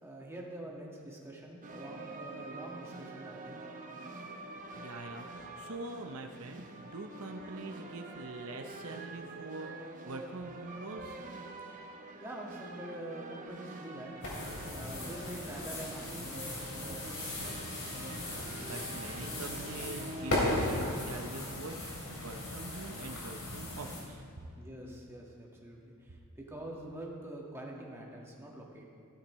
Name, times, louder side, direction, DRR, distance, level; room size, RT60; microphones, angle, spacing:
voice 1, 0.0-3.6 12.2-14.3 14.7-17.5 24.6-28.8, right 1 dB, 10° right, -2 dB, 1.7 m, -45 dB
sound 1, 1.6-20.4, right 2 dB, 35° right, 1.0 m, -46 dB
voice 2, 4.7-11.2 18.3-24.2, right 2 dB, 75° right, 4 dB, 0.8 m, -44 dB
sound 2, 14.2-24.0, left 1 dB, 65° left, 3.5 m, -37 dB
15.5 x 13.0 x 3.1 m, 2.6 s
head